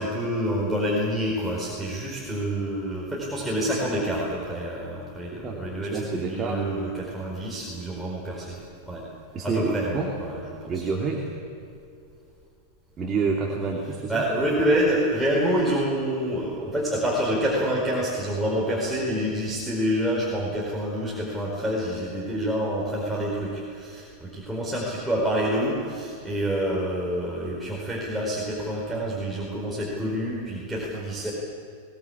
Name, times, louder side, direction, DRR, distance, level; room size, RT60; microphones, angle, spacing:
voice 1, 0.0-8.6 8.8-9.0 9.4-10.9 13.8-31.3, equal, 5° right, -5 dB, 4.7 m, -27 dB
voice 2, 5.3-6.6 9.3-10.1 10.7-11.2 13.0-14.3, right 4 dB, 25° right, 0 dB, 2.8 m, -28 dB
22.5 x 19.0 x 8.6 m, 2.4 s
figure-of-eight pair, 90°, 0 cm